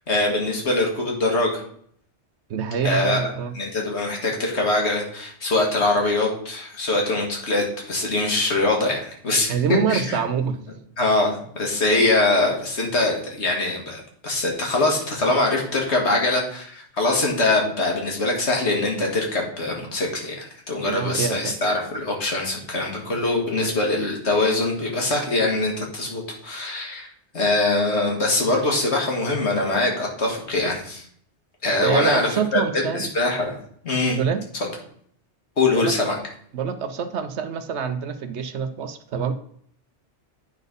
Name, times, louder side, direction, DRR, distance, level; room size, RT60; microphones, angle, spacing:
voice 1, 0.1-1.6 2.8-3.2 3.6-9.6 9.9-10.2 11.0-27.1 27.3-31.0 31.6-32.6 32.9-33.6 33.8-34.2 35.6-36.2, left 2 dB, 75° left, 0 dB, 2.1 m, -23 dB
voice 2, 2.5-3.6 9.5-10.6 20.8-21.6 23.6-23.7 31.8-33.1 34.2-34.4 35.8-35.9 36.5-39.3, right 7 dB, 75° right, 9 dB, 1.0 m, -26 dB
9.2 x 4.1 x 5.3 m, 0.62 s
omnidirectional pair, 1.2 m